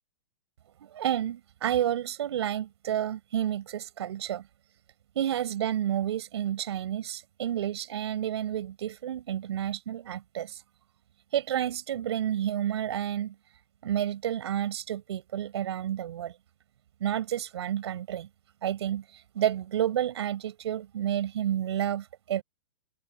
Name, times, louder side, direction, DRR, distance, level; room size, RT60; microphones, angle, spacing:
voice 1, 0.8-4.4 5.1-10.6 11.3-13.3 13.8-16.4 17.0-18.3 18.6-22.4, right 11 dB, 65° right, 4.6 m, -30 dB
hypercardioid pair, 110°, 15 cm